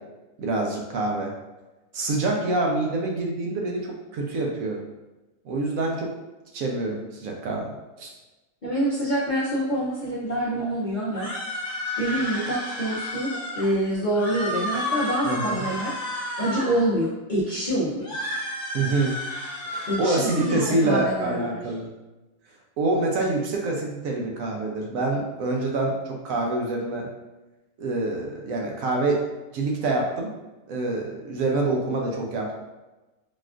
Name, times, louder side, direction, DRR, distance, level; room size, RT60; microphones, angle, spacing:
voice 1, 0.4-1.3 1.9-4.8 5.4-6.1 6.5-7.7 8.0-8.1 15.2-15.7 18.7-19.1 19.7-21.9 22.8-27.1 27.8-29.2 29.5-30.3 30.7-32.5, right 2 dB, 70° right, 0 dB, 1.0 m, -26 dB
voice 2, 8.6-11.3 12.0-18.1 19.9-21.5, right 1 dB, 55° left, -9 dB, 0.5 m, -26 dB
sound 1, 11.1-13.7 14.1-16.9 18.0-20.7, left 1 dB, 35° left, 1.1 m, -32 dB
4.1 x 2.3 x 2.4 m, 1.1 s
omnidirectional pair, 1.6 m